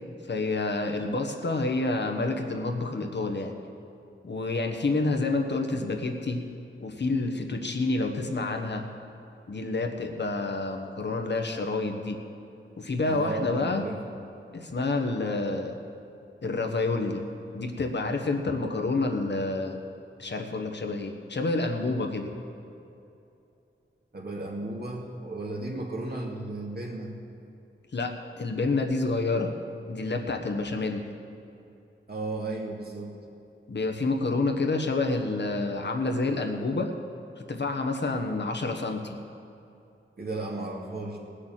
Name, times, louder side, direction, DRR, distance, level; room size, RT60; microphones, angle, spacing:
voice 1, 0.3-3.6 4.2-6.4 6.8-8.8 9.5-12.2 12.8-13.8 14.5-15.8 16.4-17.2 17.5-19.8 20.2-22.3 27.9-29.5 29.9-31.1 33.7-36.9 37.4-39.2, left 3 dB, 55° left, 3 dB, 1.2 m, -28 dB
voice 2, 13.1-14.2 24.1-27.1 32.1-33.2 40.2-41.2, right 2 dB, 50° right, -2 dB, 2.4 m, -34 dB
18.0 x 6.7 x 7.5 m, 2.7 s
wide cardioid pair, 85°, 21 cm